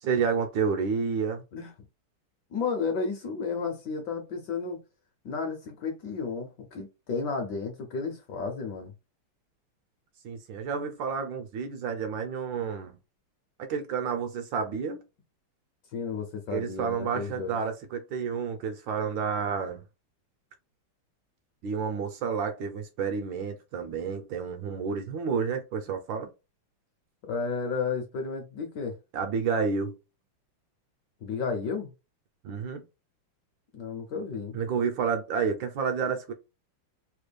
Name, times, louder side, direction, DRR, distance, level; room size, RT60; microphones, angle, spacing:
voice 1, 0.0-1.4 10.2-13.0 13.7-15.0 16.5-19.8 21.6-26.3 29.1-30.0 32.4-32.8 34.5-36.3, right 6 dB, 75° right, 1.2 m, -30 dB
voice 2, 2.5-4.8 5.2-8.9 15.9-17.6 27.2-29.0 31.2-31.9 33.7-34.6, left 5 dB, 70° left, 1.1 m, -32 dB
3.6 x 2.2 x 3.3 m
omnidirectional pair, 2.4 m